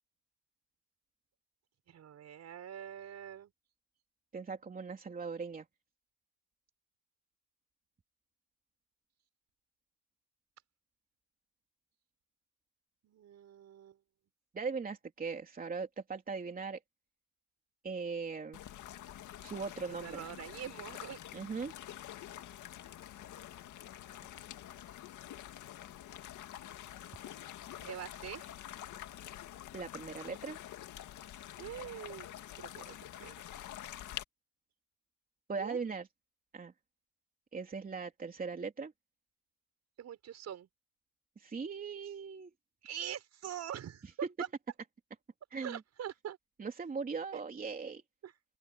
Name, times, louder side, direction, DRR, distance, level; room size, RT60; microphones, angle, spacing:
voice 1, 1.9-3.5 13.0-14.0 20.0-21.2 27.7-28.5 31.6-32.3 32.6-33.0 33.2-33.3 35.6-35.8 40.0-40.7 42.8-44.1 44.4-44.5 45.6-46.4 47.3-47.4 48.2-48.3, right 10 dB, 55° right, 6.0 m, -44 dB
voice 2, 4.3-5.6 14.5-16.8 17.8-18.6 19.4-20.2 21.3-21.7 29.7-30.6 35.5-36.1 36.5-36.7 37.5-38.9 41.4-42.5 45.5-45.8 46.6-48.0, right 5 dB, 25° right, 3.3 m, -39 dB
sound 1, 18.5-34.2, left 12 dB, 65° left, 2.0 m, -47 dB
open air
cardioid pair, 130°, 32 cm